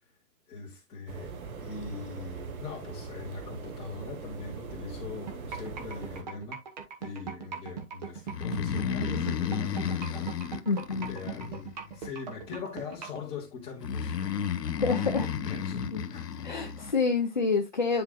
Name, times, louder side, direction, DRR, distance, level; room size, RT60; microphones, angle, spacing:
voice 1, 0.5-1.3 1.6-6.6 7.0-10.6 10.9-14.5 14.9-16.3, left 4 dB, 10° left, 2.3 m, -42 dB
sound 1, 1.1-6.2, right 4 dB, 60° right, 1.8 m, -41 dB
sound 2, 5.3-13.2, right 7 dB, 25° right, 1.2 m, -38 dB
Breathing, 8.3-12.0 13.8-16.9, left 7 dB, 80° left, 1.3 m, -32 dB
voice 2, 10.7-11.1 14.8-15.3 15.9-16.0 16.4-18.0, left 4 dB, 30° left, 0.4 m, -27 dB
10.0 x 4.8 x 2.3 m
hypercardioid pair, 165°, 48 cm